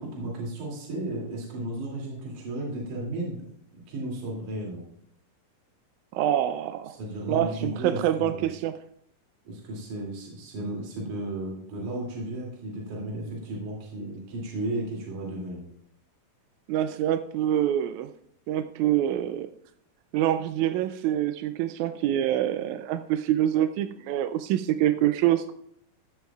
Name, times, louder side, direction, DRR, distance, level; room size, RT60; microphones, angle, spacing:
voice 1, 0.0-3.4 3.7-4.8 6.9-8.5 9.4-15.7, right 1 dB, 60° right, -3 dB, 4.0 m, -34 dB
voice 2, 6.1-6.9 7.3-8.7 16.7-18.1 18.5-19.5 20.1-25.5, right 12 dB, 85° right, 9 dB, 1.7 m, -25 dB
14.5 x 12.5 x 2.3 m, 0.70 s
omnidirectional pair, 4.0 m